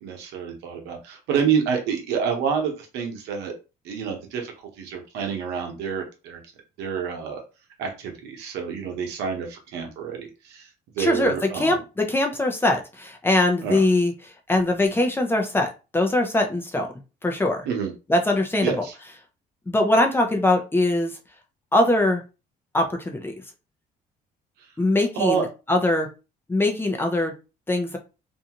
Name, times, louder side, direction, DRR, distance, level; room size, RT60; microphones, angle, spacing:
voice 1, 0.0-3.5 3.8-6.4 6.8-7.4 7.8-10.7 10.9-11.8 13.6-13.8 17.6-17.9 18.6-18.9 25.2-25.4, right 7 dB, 90° right, 3 dB, 0.9 m, -28 dB
voice 2, 11.0-16.9 17.2-17.7 18.1-18.8 19.7-21.1 21.7-22.2 22.7-23.4 24.8-26.1 26.5-27.3 27.7-28.0, left 2 dB, 15° left, 3 dB, 0.6 m, -22 dB
2.7 x 2.3 x 2.8 m, 0.30 s
cardioid pair, 110°, 17 cm